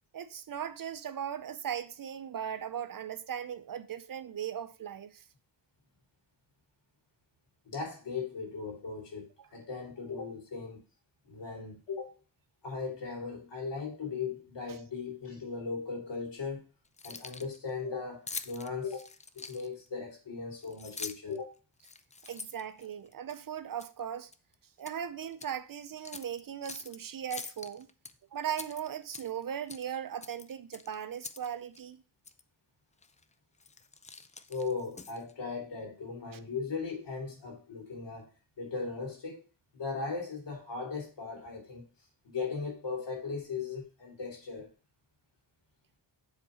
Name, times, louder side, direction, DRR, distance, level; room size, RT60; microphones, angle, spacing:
voice 1, 0.1-5.2 9.4-9.5 22.2-24.3 24.8-27.9 28.3-32.0, right 9 dB, 50° right, 0.6 m, -38 dB
voice 2, 7.6-10.8 11.2-12.2 12.6-16.6 17.0-19.1 19.3-21.5 34.5-38.3 38.6-39.4 39.7-41.9 42.2-44.7, left 4 dB, 70° left, 3.0 m, -38 dB
Keys jangling, 16.9-17.6 18.3-19.9 20.6-21.4 21.8-23.4 23.8-24.0 24.3-25.0 25.3-25.5 26.0-27.0 27.3-28.1 28.5-29.4 29.7-29.9 30.2-31.5 31.7-31.8 32.2-32.4 33.0-33.2 33.6-35.3, left 4 dB, 15° left, 0.3 m, -44 dB
7.4 x 4.0 x 4.9 m
cardioid pair, 90°, 44 cm